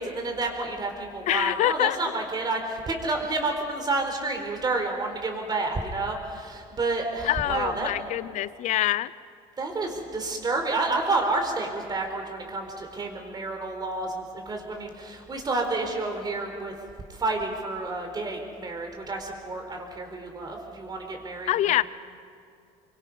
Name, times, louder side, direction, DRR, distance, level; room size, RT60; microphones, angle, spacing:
voice 1, 0.0-7.9 9.6-16.7 17.1-21.8, right 3 dB, 30° right, 3 dB, 4.3 m, -30 dB
voice 2, 1.3-2.0 7.2-9.1 21.5-21.8, left 14 dB, 60° left, 17 dB, 0.7 m, -25 dB
24.5 x 24.0 x 5.6 m, 2.4 s
cardioid pair, 105°, 14 cm